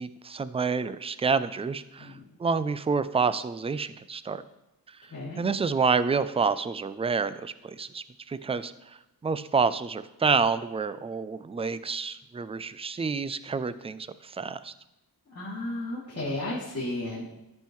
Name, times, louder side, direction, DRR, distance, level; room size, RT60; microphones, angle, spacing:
voice 1, 0.0-2.1 2.4-4.4 5.4-8.7 9.2-14.7, right 5 dB, 15° right, 14 dB, 0.3 m, -28 dB
voice 2, 5.1-5.4 15.3-17.3, left 1 dB, 40° left, -11 dB, 2.7 m, -33 dB
13.0 x 5.4 x 3.1 m, 0.94 s
wide cardioid pair, 105°, 37 cm